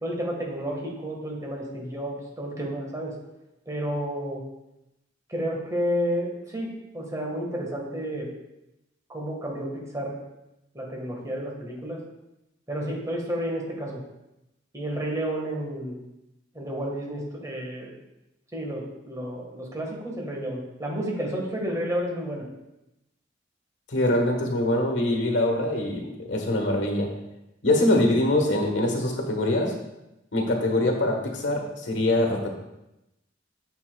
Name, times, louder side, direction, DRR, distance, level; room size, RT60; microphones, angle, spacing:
voice 1, 0.0-3.1 3.7-4.4 5.3-6.7 6.9-8.3 9.1-10.2 10.7-12.0 12.7-14.0 14.7-16.0 16.6-17.9 18.5-22.4, equal, 20° right, -1 dB, 1.6 m, -31 dB
voice 2, 23.9-27.1 27.6-29.7 30.3-32.5, left 1 dB, 75° left, 3 dB, 1.4 m, -23 dB
9.7 x 7.1 x 2.3 m, 0.92 s
head